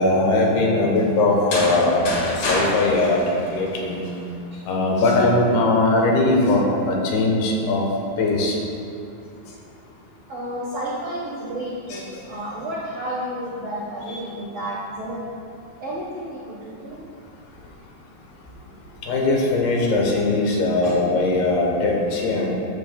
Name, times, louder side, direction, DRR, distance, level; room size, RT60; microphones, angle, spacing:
voice 1, 0.0-2.0 2.2-3.2 3.5-4.0 4.6-7.8 8.2-8.6 19.1-22.6, left 2 dB, 75° left, -2 dB, 3.0 m, -20 dB
sound 1, 1.3-4.2, left 1 dB, 55° left, 3.0 m, -27 dB
voice 2, 10.3-15.3 15.8-17.0 20.8-20.9, right 1 dB, 80° right, -8 dB, 1.3 m, -31 dB
13.5 x 7.0 x 2.2 m, 2.6 s
omnidirectional pair, 4.8 m